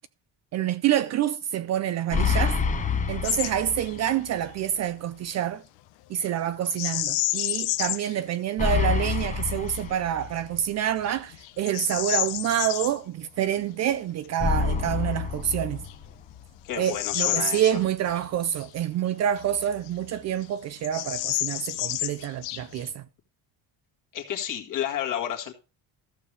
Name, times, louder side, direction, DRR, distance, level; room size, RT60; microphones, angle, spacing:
voice 1, 0.5-2.6 3.1-5.6 6.1-15.8 16.8-23.0, right 10 dB, 40° right, 0.4 m, -27 dB
sound 1, 2.1-4.1 4.5-4.6 8.6-10.6 14.4-16.4, left 5 dB, 20° left, 0.8 m, -27 dB
Bird vocalization bird call bird song, 3.2-3.5 3.9-4.1 6.7-8.2 8.7-8.8 9.4-9.8 10.4-10.5 11.0-12.9 15.1-15.2 15.8-18.2 18.6-18.7 19.4-20.2 20.4-20.5 20.8-22.9, left 17 dB, 90° left, 1.0 m, -30 dB
voice 2, 16.6-17.7 24.1-25.5, left 10 dB, 45° left, 1.9 m, -31 dB
14.0 x 6.8 x 3.3 m
cardioid pair, 165°, 43 cm